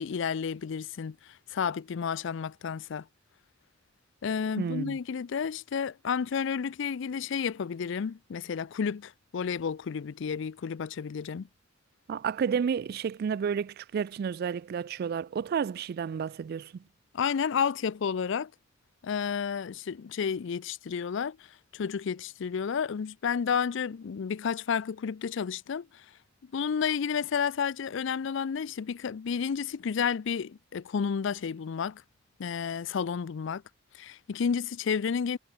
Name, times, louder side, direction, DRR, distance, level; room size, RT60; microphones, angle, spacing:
voice 1, 0.0-3.1 4.2-11.5 17.1-18.5 19.0-21.5 21.7-26.0 26.5-32.0 32.4-33.6 33.9-35.4, left 6 dB, 70° left, 0.4 m, -31 dB
voice 2, 4.6-5.0 12.1-16.7, right 7 dB, 50° right, 0.3 m, -31 dB
head